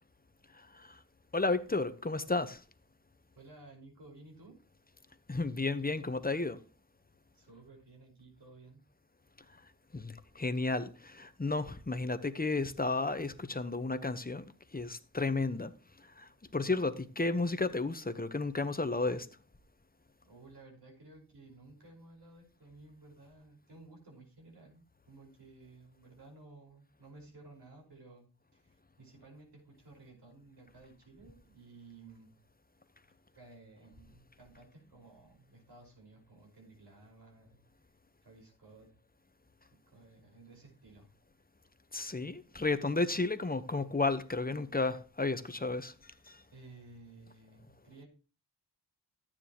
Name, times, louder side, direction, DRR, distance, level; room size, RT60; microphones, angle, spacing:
voice 1, 0.5-1.0 1.3-2.6 5.3-6.6 9.9-14.5 14.7-15.7 16.2-19.3 41.9-46.4, left 3 dB, 20° left, 1.0 m, -33 dB
voice 2, 3.3-4.6 7.3-8.8 20.2-32.4 33.3-37.6 38.2-38.9 39.9-41.1 46.5-48.1, right 3 dB, 70° right, 5.4 m, -55 dB
13.5 x 9.6 x 3.0 m
cardioid pair, 60°, 41 cm